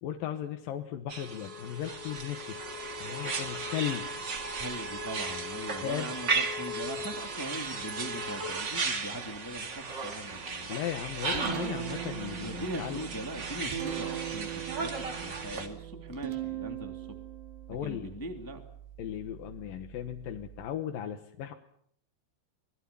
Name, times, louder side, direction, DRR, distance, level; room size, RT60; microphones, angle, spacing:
voice 1, 0.0-4.1 5.8-6.1 10.7-13.0 17.7-18.1 19.0-21.5, left 10 dB, 65° left, 5 dB, 2.5 m, -36 dB
sound 1, 1.1-15.7, right 3 dB, 35° right, 2.0 m, -35 dB
voice 2, 4.6-10.7 12.4-17.2 17.8-18.6, equal, 5° left, 4 dB, 1.5 m, -40 dB
Guitar, 10.9-20.7, right 12 dB, 70° right, 4.5 m, -40 dB
27.0 x 21.0 x 7.0 m, 0.67 s
omnidirectional pair, 5.1 m